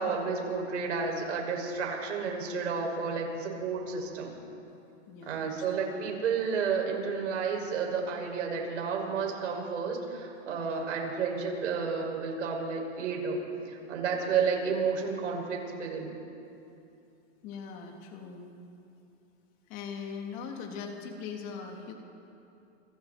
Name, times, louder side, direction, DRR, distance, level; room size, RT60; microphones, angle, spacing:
voice 1, 0.0-4.3 5.3-13.4 13.6-16.1, right 5 dB, 90° right, 0 dB, 6.3 m, -31 dB
voice 2, 5.1-5.4 10.6-10.8 17.4-18.5 19.7-21.9, left 6 dB, 35° left, 1 dB, 3.2 m, -40 dB
29.0 x 25.5 x 4.5 m, 2.7 s
supercardioid pair, 160°, 36 cm